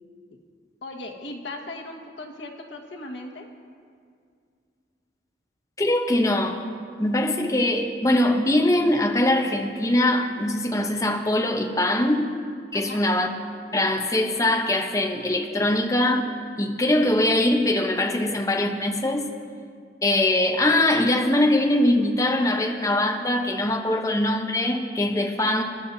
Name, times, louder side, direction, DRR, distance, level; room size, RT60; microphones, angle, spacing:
voice 1, 0.8-3.4 12.7-13.0, left 2 dB, 80° left, 0 dB, 1.5 m, -37 dB
voice 2, 5.8-6.6 7.0-12.2 12.7-13.3 13.7-16.3 16.6-19.2 20.0-25.6, left 1 dB, 20° left, 3 dB, 0.8 m, -22 dB
23.0 x 11.5 x 2.7 m, 2.2 s
head